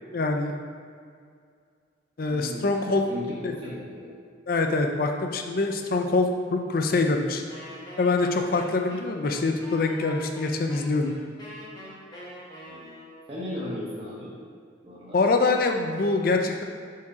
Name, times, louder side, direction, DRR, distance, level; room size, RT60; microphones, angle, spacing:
voice 1, 0.1-0.5 2.2-3.0 3.4-3.5 4.5-7.4 8.0-11.1 15.1-16.6, left 3 dB, 45° left, 4 dB, 0.5 m, -24 dB
voice 2, 2.3-4.1 12.7-12.9 13.3-14.3 14.8-15.2, left 1 dB, 30° right, -7 dB, 0.8 m, -36 dB
Wind instrument woodwind instrument, 7.5-13.3, left 1 dB, 20° left, 1.0 m, -43 dB
4.7 x 4.2 x 4.7 m, 2.2 s
head